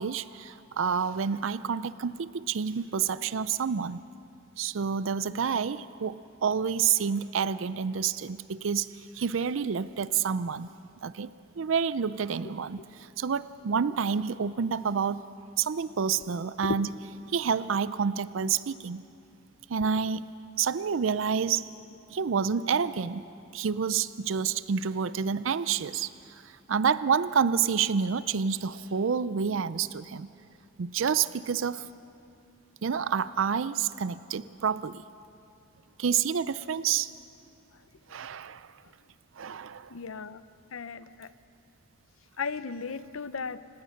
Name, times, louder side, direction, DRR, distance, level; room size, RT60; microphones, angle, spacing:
voice 1, 0.0-4.0 4.6-10.7 11.0-15.2 15.6-16.9 17.3-19.0 19.7-20.2 20.6-21.7 22.1-23.2 23.5-26.1 26.7-30.3 30.8-31.9 32.8-35.0 36.0-37.1 38.1-38.7 39.4-39.9, right 6 dB, 70° right, 16 dB, 0.5 m, -28 dB
voice 2, 39.9-40.4 40.7-41.3 42.4-43.8, left 5 dB, 90° left, 15 dB, 0.7 m, -35 dB
29.0 x 17.5 x 6.5 m, 2.6 s
head